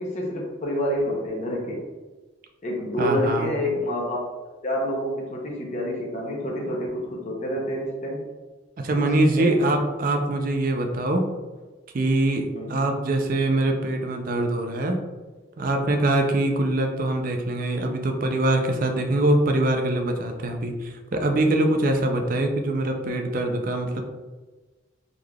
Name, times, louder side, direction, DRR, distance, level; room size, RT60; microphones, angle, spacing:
voice 1, 0.0-1.9 2.6-4.2 4.6-8.2 8.9-9.9 12.5-12.8, equal, 40° left, -2 dB, 0.7 m, -28 dB
voice 2, 3.0-3.5 8.8-11.3 11.9-15.0 15.6-24.0, right 2 dB, 45° right, 4 dB, 0.5 m, -23 dB
3.8 x 3.2 x 2.3 m, 1.3 s
head